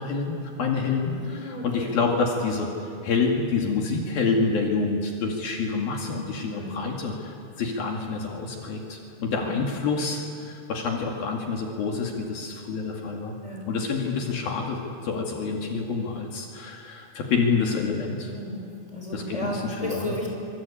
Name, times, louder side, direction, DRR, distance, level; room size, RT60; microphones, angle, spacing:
voice 1, 0.0-2.7 3.0-13.4 13.7-18.3 19.1-20.1, left 4 dB, 70° left, 0 dB, 4.0 m, -27 dB
voice 2, 1.1-1.9 6.5-6.8 9.4-9.6 13.4-13.7 18.3-20.3, equal, 10° left, -1 dB, 6.0 m, -34 dB
26.0 x 25.0 x 8.7 m, 2.4 s
omnidirectional pair, 4.5 m